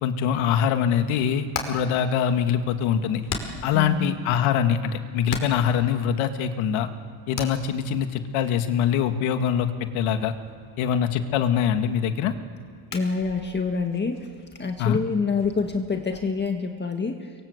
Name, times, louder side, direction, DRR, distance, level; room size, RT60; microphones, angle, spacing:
voice 1, 0.0-3.2 3.6-6.9 7.3-10.3 10.8-12.3 14.8-15.0, left 8 dB, 75° left, 7 dB, 2.3 m, -23 dB
Hammer, 1.0-16.3, left 4 dB, 40° left, 4.9 m, -41 dB
voice 2, 3.6-4.2 12.9-14.3 14.6-17.3, left 4 dB, 20° left, 4 dB, 1.8 m, -27 dB
28.0 x 23.0 x 8.1 m, 2.1 s
cardioid pair, 125°, 49 cm